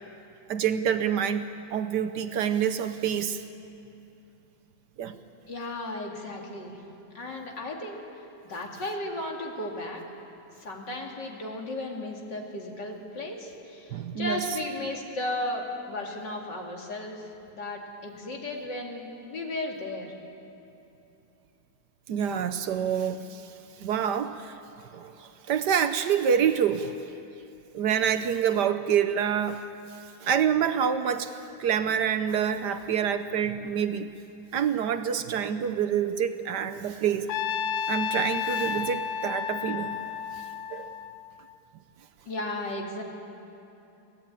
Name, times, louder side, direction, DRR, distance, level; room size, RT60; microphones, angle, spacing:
voice 1, 0.5-3.4 5.0-5.2 13.9-14.4 22.1-23.5 23.8-24.6 24.9-26.9 27.7-29.7 30.2-31.3 31.6-34.1 34.5-37.3 37.9-40.0 40.7-40.9, right 8 dB, 65° right, 10 dB, 1.3 m, -27 dB
voice 2, 5.5-6.8 7.1-8.0 8.4-10.0 10.6-17.3 17.5-20.1 42.3-43.0, left 1 dB, 65° left, 0 dB, 3.1 m, -35 dB
Trumpet, 37.3-41.5, left 7 dB, 85° left, 1.5 m, -32 dB
23.5 x 17.0 x 9.0 m, 2.9 s
omnidirectional pair, 2.1 m